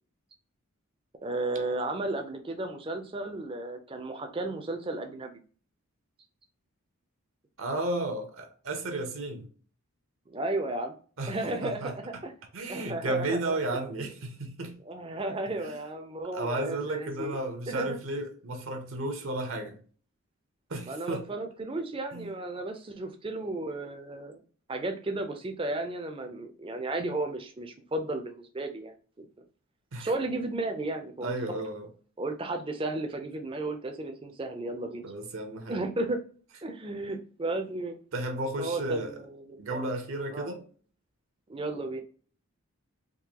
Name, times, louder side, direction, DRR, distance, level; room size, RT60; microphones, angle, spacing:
voice 1, 1.2-5.3 10.3-10.9 11.3-12.3 12.7-14.1 14.9-17.4 17.7-18.0 20.9-24.4 24.7-29.3 30.0-31.3 32.2-35.0 35.7-36.2 36.6-38.0 38.6-39.9 40.3-40.5 41.5-42.0, right 2 dB, 25° right, 0.4 m, -34 dB
voice 2, 7.6-9.5 11.2-11.4 11.6-12.2 12.5-14.8 15.6-15.8 16.3-19.8 20.7-21.3 22.1-22.3 29.9-30.1 31.2-31.9 35.0-35.8 38.1-39.2 39.6-40.7, right 2 dB, 65° right, 0.6 m, -33 dB
3.7 x 2.6 x 2.9 m
head